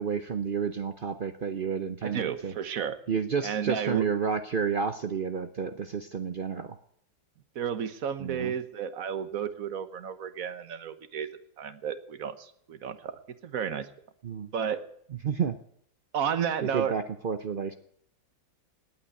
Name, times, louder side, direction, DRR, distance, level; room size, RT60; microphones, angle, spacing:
voice 1, 0.0-2.6 3.1-6.8 8.2-8.6 14.2-14.5 15.2-15.6 16.6-17.7, right 6 dB, 85° right, 9 dB, 0.4 m, -30 dB
voice 2, 2.0-3.0 3.4-4.0 7.5-11.3 11.6-13.9 14.5-14.8 16.1-17.0, right 8 dB, 55° right, 12 dB, 1.4 m, -32 dB
18.5 x 9.0 x 8.2 m, 0.67 s
omnidirectional pair, 2.0 m